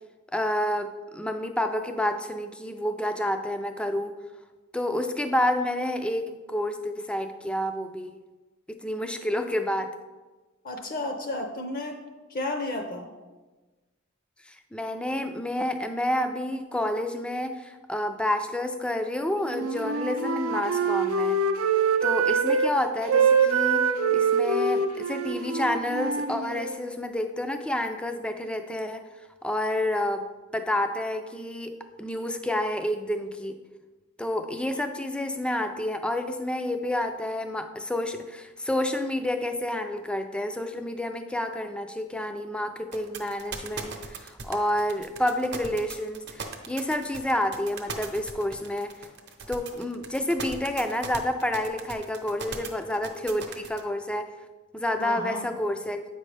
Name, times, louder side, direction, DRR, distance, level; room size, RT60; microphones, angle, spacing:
voice 1, 0.3-4.1 4.7-8.2 8.7-9.9 14.5-21.4 22.0-29.0 29.4-30.2 30.5-31.7 32.0-33.6 34.2-48.9 49.5-54.3 54.7-56.0, left 1 dB, 5° left, 7 dB, 0.3 m, -29 dB
voice 2, 10.6-12.0 12.3-13.1 55.0-55.5, left 2 dB, 45° left, 4 dB, 0.6 m, -32 dB
Wind instrument woodwind instrument, 19.4-22.7 23.0-26.8, right 5 dB, 80° right, 0.5 m, -24 dB
sound 1, 42.9-53.8, right 5 dB, 55° right, 0.8 m, -38 dB
8.2 x 5.3 x 3.3 m, 1.2 s
head